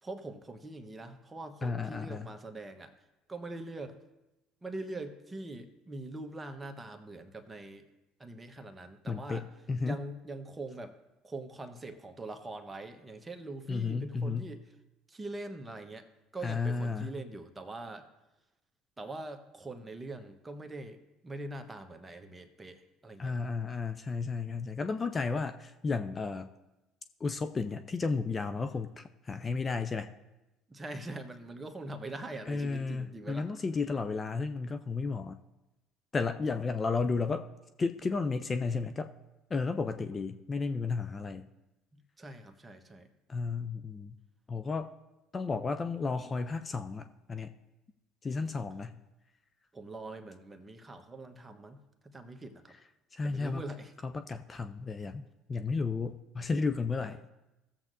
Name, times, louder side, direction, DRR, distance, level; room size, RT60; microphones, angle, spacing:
voice 1, 0.0-2.9 3.3-4.0 4.6-7.9 8.2-9.5 9.8-11.0 11.2-14.6 15.1-16.0 16.3-18.1 19.0-23.4 30.7-33.5 42.2-43.1 49.7-51.8 52.0-52.7 53.2-53.9 57.0-57.3, right 2 dB, 20° right, 6 dB, 1.1 m, -43 dB
voice 2, 1.6-2.3 9.1-10.0 13.7-14.5 16.4-17.1 23.2-26.5 27.2-30.1 32.5-35.4 36.1-37.5 37.8-39.1 39.5-41.4 43.3-44.2 44.5-44.9 45.3-47.5 48.2-49.0 53.1-53.6 54.0-55.2 55.5-57.2, left 4 dB, 30° left, 9 dB, 0.5 m, -33 dB
16.5 x 7.3 x 2.7 m, 0.99 s
hypercardioid pair, 65°, 0 cm